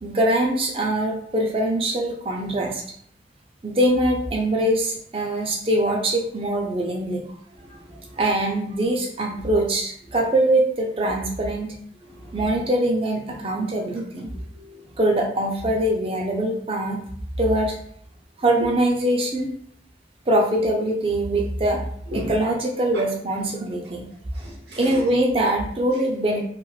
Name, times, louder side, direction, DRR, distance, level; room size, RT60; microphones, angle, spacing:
voice 1, 0.0-2.8 3.6-7.2 8.2-11.7 12.3-14.3 15.0-17.0 17.4-17.8 18.4-19.5 20.3-21.8 22.1-24.1 24.8-26.4, right 1 dB, 30° right, 0 dB, 0.5 m, -23 dB
voice 2, 7.6-8.2 12.0-12.4 14.6-14.8 22.1-22.3 24.4-25.0, equal, 70° right, -4 dB, 0.8 m, -36 dB
3.1 x 2.4 x 2.3 m, 0.64 s
head